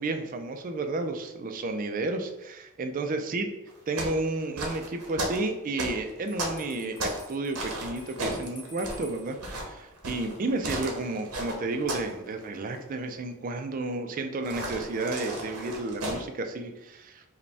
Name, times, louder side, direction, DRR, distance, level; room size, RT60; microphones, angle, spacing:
voice 1, 0.0-3.4 3.9-17.2, right 2 dB, 40° right, 6 dB, 0.3 m, -32 dB
sound 1, 3.7-7.3 7.5-12.2 12.4-12.8 14.4-16.2, right 1 dB, 85° right, 0.9 m, -34 dB
Bell, 6.3-9.4, left 2 dB, 55° left, 1.3 m, -51 dB
4.9 x 2.2 x 3.3 m, 0.99 s
head